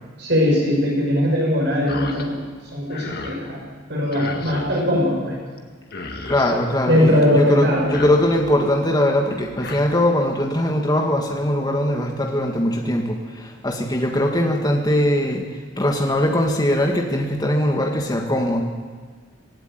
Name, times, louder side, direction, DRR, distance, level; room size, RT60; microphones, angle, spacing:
voice 1, 0.2-2.4 2.7-3.6 3.9-5.4 6.9-7.9, equal, 60° right, -2 dB, 6.7 m, -20 dB
sound 1, 1.9-2.3 2.6-3.4 4.1-4.8 5.6-5.7 5.9-6.6 7.7-8.6 9.3-9.8, left 3 dB, 50° left, 1.8 m, -34 dB
voice 2, 6.3-18.6, left 1 dB, 20° left, 2 dB, 1.8 m, -21 dB
17.0 x 17.0 x 9.2 m, 1.5 s
head